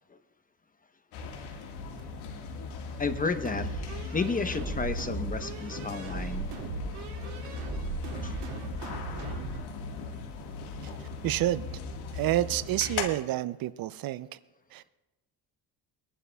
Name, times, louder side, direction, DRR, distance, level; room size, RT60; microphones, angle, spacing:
sound 1, 1.1-13.1, left 4 dB, 80° left, 1.7 m, -38 dB
voice 1, 3.0-6.5 8.2-8.3, left 4 dB, 20° left, 9 dB, 0.9 m, -32 dB
sound 2, 3.5-9.6, right 5 dB, 85° right, 2.2 m, -38 dB
voice 2, 11.2-11.6 12.1-14.3 14.7-14.9, right 14 dB, 60° right, 16 dB, 0.5 m, -29 dB
24.0 x 11.0 x 2.3 m, 1.1 s
cardioid pair, 95°, 40 cm